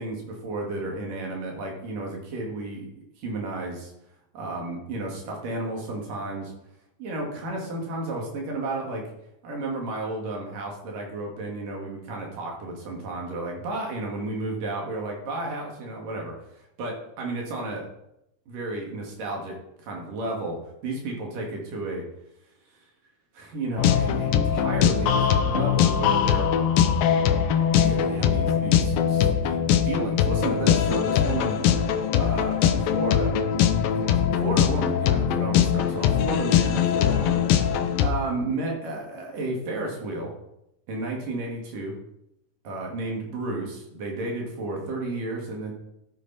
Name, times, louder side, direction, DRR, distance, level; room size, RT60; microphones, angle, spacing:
voice 1, 0.0-2.9 3.2-3.9 4.3-6.5 7.0-9.0 9.4-17.9 18.5-22.1 23.3-26.5 27.8-29.6 29.8-31.6 32.1-33.4 34.0-40.3 40.9-42.0 42.6-45.7, right 2 dB, 70° right, 0 dB, 3.9 m, -32 dB
sound 1, 23.8-38.1, left 8 dB, 85° left, 2.6 m, -22 dB
14.5 x 8.5 x 4.3 m, 0.83 s
omnidirectional pair, 4.0 m